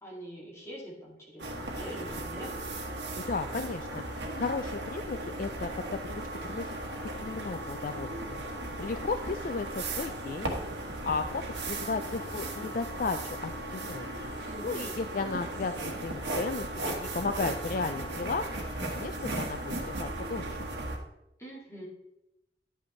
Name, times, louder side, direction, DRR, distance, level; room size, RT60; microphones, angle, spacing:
voice 1, 0.0-2.5 14.5-14.9 21.4-21.9, equal, 15° left, -4 dB, 2.3 m, -43 dB
sound 1, 1.4-21.0, right 1 dB, 75° right, 1.4 m, -36 dB
voice 2, 3.2-8.4 8.8-14.1 14.4-20.6, left 4 dB, 45° left, 8 dB, 0.4 m, -35 dB
11.0 x 8.4 x 3.2 m, 0.87 s
head